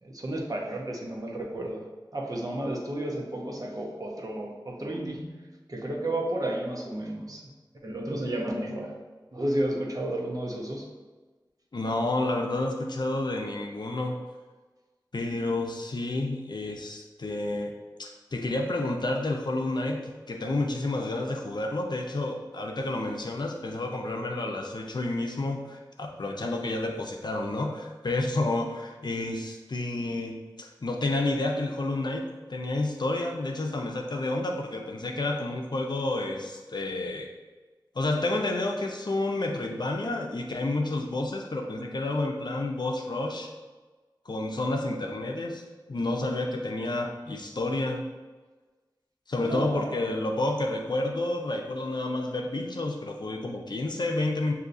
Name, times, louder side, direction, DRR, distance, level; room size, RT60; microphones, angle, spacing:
voice 1, 0.0-1.9 2.1-5.3 5.7-7.5 7.8-9.0 9.3-10.9 49.4-50.0, right 1 dB, 50° right, 0 dB, 0.8 m, -32 dB
voice 2, 11.7-14.1 15.1-17.7 18.0-37.3 38.0-43.5 44.3-45.6 45.9-48.0 49.3-54.5, left 2 dB, 65° left, 2 dB, 0.5 m, -30 dB
6.6 x 2.7 x 2.6 m, 1.3 s
wide cardioid pair, 50°, 8 cm